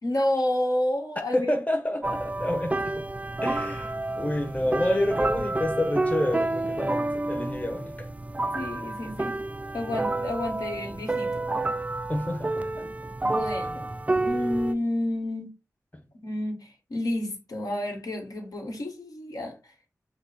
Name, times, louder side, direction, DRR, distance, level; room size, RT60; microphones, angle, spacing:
voice 1, 0.0-1.5 8.5-9.4 9.7-11.4 13.2-13.9 14.2-15.5 16.1-19.7, left 1 dB, 80° left, 1.4 m, -30 dB
voice 2, 1.3-3.0 3.4-8.1 12.1-12.8, left 1 dB, 25° left, 0.9 m, -28 dB
sound 1, 2.0-14.7, right 2 dB, 20° right, 0.3 m, -29 dB
5.9 x 2.1 x 4.1 m
wide cardioid pair, 65°, 6 cm